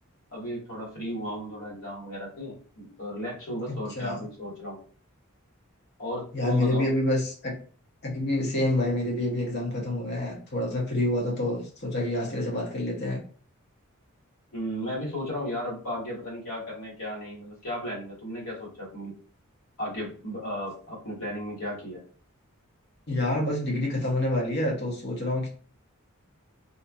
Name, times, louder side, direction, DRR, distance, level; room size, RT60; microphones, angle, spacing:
voice 1, 0.3-4.8 6.0-6.9 14.5-19.1 19.8-22.0, equal, 80° left, 1.5 m, -35 dB
voice 2, 3.7-4.2 6.3-7.6 8.0-13.2 23.1-25.5, left 1 dB, 50° left, 0.8 m, -27 dB
2.6 x 2.3 x 2.6 m
head